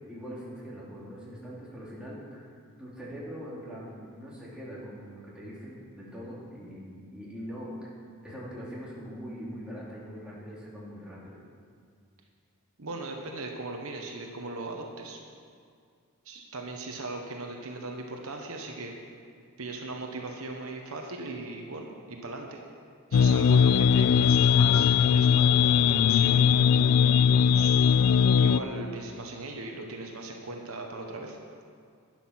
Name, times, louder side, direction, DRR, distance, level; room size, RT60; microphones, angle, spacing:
voice 1, 0.1-2.5 2.8-7.9 8.2-11.4, equal, 5° right, -7 dB, 2.6 m, -42 dB
voice 2, 12.8-15.2 16.2-18.9 19.6-22.6 23.1-26.4 27.5-27.8 28.3-31.4, right 2 dB, 70° right, 2 dB, 1.2 m, -38 dB
sound 1, 23.1-28.6, left 7 dB, 85° left, 0.4 m, -20 dB
12.0 x 9.1 x 5.8 m, 2.2 s
head